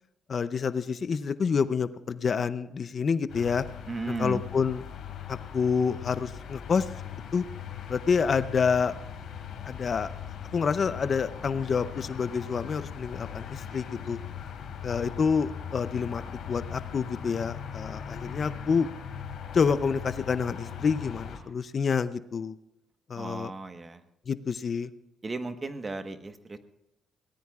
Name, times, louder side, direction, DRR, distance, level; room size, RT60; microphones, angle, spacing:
voice 1, 0.3-3.6 4.2-4.8 5.3-6.9 7.3-7.4 7.9-8.9 9.6-14.2 14.8-18.9 19.5-22.5 23.1-23.5 24.3-24.9, left 6 dB, 45° left, 13 dB, 0.6 m, -28 dB
sound 1, 3.3-21.4, left 8 dB, 75° left, 3.2 m, -40 dB
voice 2, 3.9-4.4 23.1-24.0 25.2-26.6, right 3 dB, 30° right, 8 dB, 1.3 m, -35 dB
22.5 x 18.0 x 2.4 m, 0.90 s
cardioid pair, 90°, 0 cm